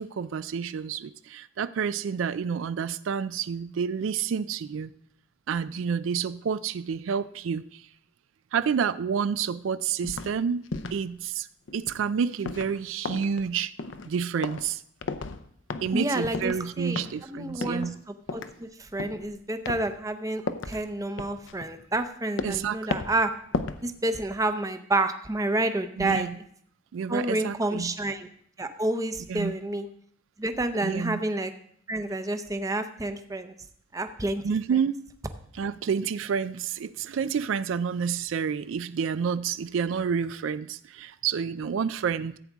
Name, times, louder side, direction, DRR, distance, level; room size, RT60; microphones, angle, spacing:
voice 1, 0.0-4.9 5.5-7.8 8.5-11.5 11.7-13.7 14.0-14.8 15.8-18.0 22.4-22.8 26.0-26.4 26.9-27.9 29.3-29.5 30.8-31.2 34.4-35.0 35.6-42.4, right 6 dB, 80° right, 14 dB, 0.4 m, -29 dB
sound 1, 10.0-10.3 10.7-11.0 11.7-12.0 12.4-12.8 13.0-13.5 13.8-14.2 14.4-14.7 15.0-15.4 15.7-16.0 16.3-16.6 17.0-17.3 17.6-18.0 18.3-18.5 19.0-19.3 19.6-19.9 20.5-20.8 21.2-22.1 22.4-22.7 22.9-23.2 23.5-23.9 24.2-24.3, left 3 dB, 70° left, 0.6 m, -34 dB
voice 2, 15.9-17.0 17.3-23.3 23.8-26.3 27.1-28.3 28.6-29.9 30.4-31.5 31.9-33.6 33.9-34.4, right 2 dB, 15° right, 8 dB, 0.6 m, -29 dB
14.5 x 8.5 x 3.5 m, 0.65 s
head